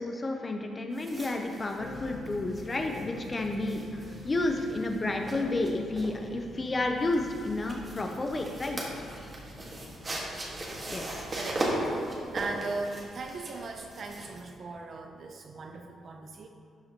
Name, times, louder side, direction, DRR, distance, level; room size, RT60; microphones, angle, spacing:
voice 1, 0.0-8.8 9.1-9.3 10.9-11.3, left 2 dB, 25° left, 3 dB, 0.6 m, -31 dB
sound 1, 0.9-14.4, right 1 dB, 30° right, 1.5 m, -38 dB
sound 2, 1.8-11.8, left 2 dB, 50° left, 0.8 m, -47 dB
voice 2, 11.3-16.5, right 3 dB, 45° right, 3 dB, 0.6 m, -38 dB
12.0 x 7.0 x 2.9 m, 2.3 s
cardioid pair, 140°, 0 cm